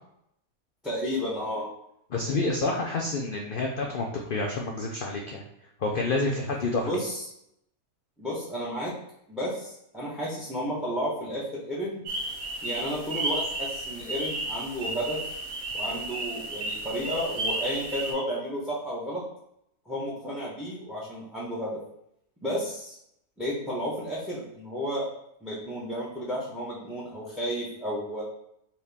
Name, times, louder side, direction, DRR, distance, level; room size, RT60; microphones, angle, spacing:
voice 1, 0.8-1.6 6.8-7.2 8.2-8.9 9.3-12.0 12.6-15.2 15.7-19.2 19.8-21.8 22.4-22.9 23.4-25.1 25.4-28.2, equal, ahead, -6 dB, 0.6 m, -32 dB
voice 2, 2.1-5.4 5.8-6.9, left 3 dB, 85° left, 0 dB, 0.4 m, -28 dB
sound 1, 12.0-18.1, right 2 dB, 65° right, 1.5 m, -33 dB
4.3 x 2.9 x 3.4 m, 0.77 s
omnidirectional pair, 1.6 m